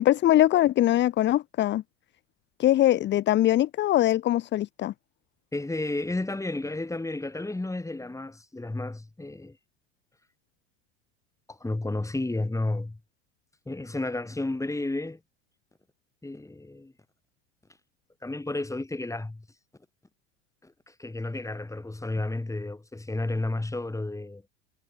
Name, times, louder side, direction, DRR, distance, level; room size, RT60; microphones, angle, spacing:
voice 1, 0.0-1.8 2.6-4.9, left 13 dB, 30° left, 0.7 m, -22 dB
voice 2, 5.5-9.6 11.5-13.0 13.7-15.2 16.2-16.9 18.2-19.5 20.6-24.4, left 2 dB, 10° left, 6.9 m, -32 dB
hypercardioid pair, 85°, 36 cm